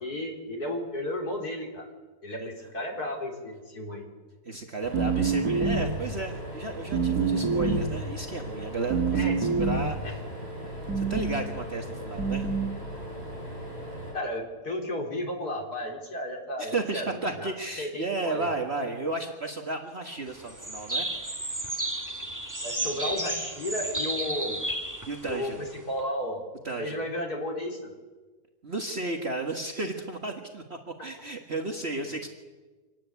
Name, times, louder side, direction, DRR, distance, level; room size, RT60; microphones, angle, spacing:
voice 1, 0.0-1.9 2.2-4.0 9.1-9.4 10.0-10.1 14.1-17.1 17.4-17.5 17.8-18.5 22.6-24.6 25.2-26.4 26.8-27.9, left 1 dB, 80° left, 1 dB, 4.6 m, -33 dB
voice 2, 4.4-10.2 11.0-12.5 16.6-21.1 25.1-25.7 26.6-27.1 28.6-32.3, right 3 dB, 45° right, 3 dB, 1.8 m, -33 dB
sound 1, 4.8-14.1, equal, 25° left, 6.5 m, -39 dB
sound 2, 4.9-6.1 6.9-8.0 8.9-10.0 10.9-11.5 12.2-12.8, right 4 dB, 70° right, 2.6 m, -26 dB
sound 3, 20.3-26.0, right 1 dB, 10° right, 1.9 m, -33 dB
26.0 x 19.0 x 8.3 m, 1.3 s
omnidirectional pair, 1.6 m